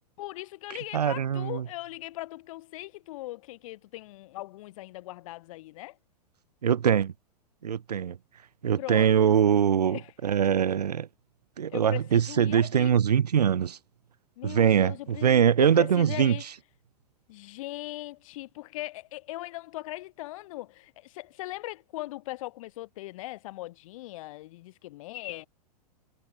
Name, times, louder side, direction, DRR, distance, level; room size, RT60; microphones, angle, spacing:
voice 1, 0.2-6.0 8.8-9.4 9.9-10.1 11.7-13.0 14.4-16.4 17.3-25.5, left 18 dB, 55° left, 3.7 m, -39 dB
voice 2, 0.9-1.6 6.6-7.1 7.6-8.2 8.6-11.1 11.6-13.8 14.4-16.4, right 8 dB, 80° right, 0.8 m, -23 dB
figure-of-eight pair, 100°, 20 cm